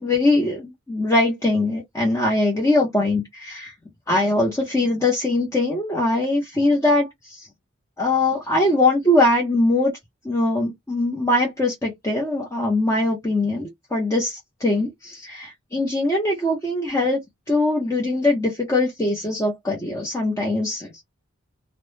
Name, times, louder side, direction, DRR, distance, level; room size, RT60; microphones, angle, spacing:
voice 1, 0.0-3.7 4.1-7.5 8.0-9.9 10.2-17.2 17.5-21.0, left 2 dB, 15° left, 0.6 m, -22 dB
2.1 x 2.0 x 3.1 m
head